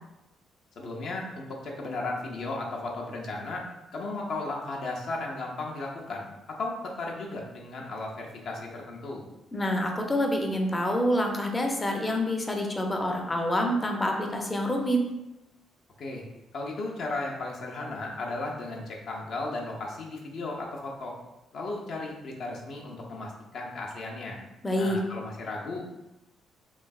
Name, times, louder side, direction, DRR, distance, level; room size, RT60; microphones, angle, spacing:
voice 1, 0.8-3.6 3.9-6.3 6.6-9.2 16.0-16.2 16.5-21.1 21.5-24.4 24.8-25.9, left 2 dB, 65° left, -1 dB, 0.6 m, -35 dB
voice 2, 9.5-15.1 24.6-25.0, equal, 20° left, 2 dB, 0.5 m, -27 dB
3.1 x 2.6 x 2.3 m, 0.97 s
cardioid pair, 90°, 0 cm